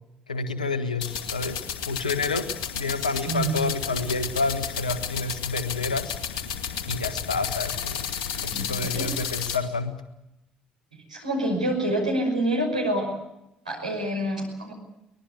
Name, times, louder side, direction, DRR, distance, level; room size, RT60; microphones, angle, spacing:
voice 1, 0.3-2.5 2.7-6.2 6.9-8.1 8.4-9.9, left 3 dB, 85° left, 11 dB, 1.4 m, -29 dB
sound 1, 1.0-9.6, left 8 dB, 65° left, 2.2 m, -32 dB
voice 2, 3.0-3.5 8.3-9.1 11.1-13.1 13.6-14.7, right 1 dB, 85° right, -1 dB, 5.9 m, -27 dB
23.5 x 20.5 x 8.3 m, 0.89 s
figure-of-eight pair, 50°, 4 cm